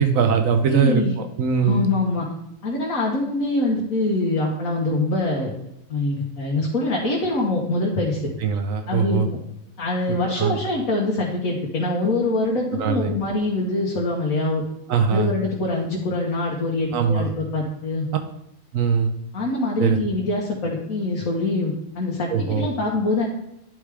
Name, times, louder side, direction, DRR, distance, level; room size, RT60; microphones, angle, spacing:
voice 1, 0.0-1.9 8.4-9.3 10.4-10.6 12.7-13.1 14.9-15.3 16.9-17.3 18.7-19.1 19.8-20.0 22.3-22.7, right 6 dB, 80° right, 6 dB, 1.2 m, -21 dB
voice 2, 0.7-1.1 1.6-2.3 2.6-5.5 5.9-8.2 8.9-9.4 9.8-14.6 15.1-18.1 19.3-23.3, left 2 dB, 80° left, -3 dB, 1.6 m, -24 dB
10.5 x 4.9 x 3.4 m, 0.81 s
omnidirectional pair, 1.4 m